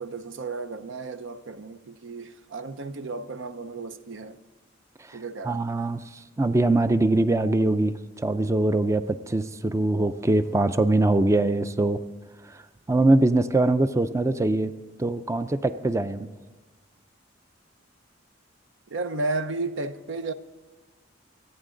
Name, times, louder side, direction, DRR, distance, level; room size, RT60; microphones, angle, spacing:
voice 1, 0.0-4.4 5.1-5.6 18.9-20.3, right 3 dB, 80° right, 0.7 m, -33 dB
voice 2, 5.4-12.0 12.4-12.6 12.9-14.7 15.0-16.3, right 2 dB, 15° right, 0.4 m, -23 dB
27.0 x 9.0 x 3.8 m
head